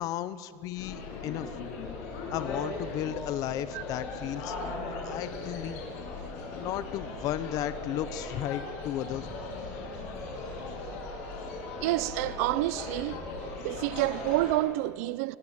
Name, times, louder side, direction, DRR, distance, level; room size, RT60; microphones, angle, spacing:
voice 1, 0.0-1.5 2.3-5.8 6.5-9.3, left 12 dB, 50° left, 1.0 m, -34 dB
sound 1, 0.7-14.5, left 3 dB, 90° left, 7.9 m, -38 dB
voice 2, 11.8-13.2 13.6-15.4, right 18 dB, 85° right, 0.8 m, -28 dB
30.0 x 20.0 x 8.3 m
cardioid pair, 155°, 8 cm